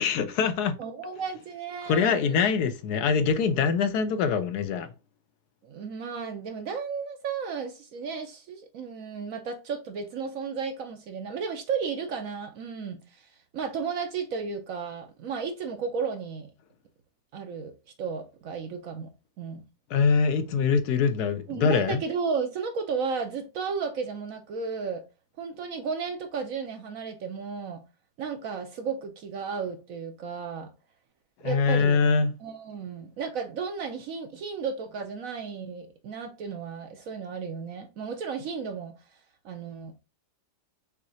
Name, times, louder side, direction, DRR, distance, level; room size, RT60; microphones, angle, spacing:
voice 1, 0.0-0.8 1.9-4.9 19.9-22.0 31.4-32.3, left 5 dB, 75° left, 1.1 m, -24 dB
voice 2, 0.8-2.4 5.6-16.5 17.3-17.7 18.0-19.1 19.4-19.6 21.5-25.0 25.4-27.8 28.2-30.7 31.4-32.0 32.4-38.9 39.4-40.0, right 5 dB, 65° right, 0.9 m, -34 dB
6.2 x 2.8 x 2.7 m
omnidirectional pair, 1.8 m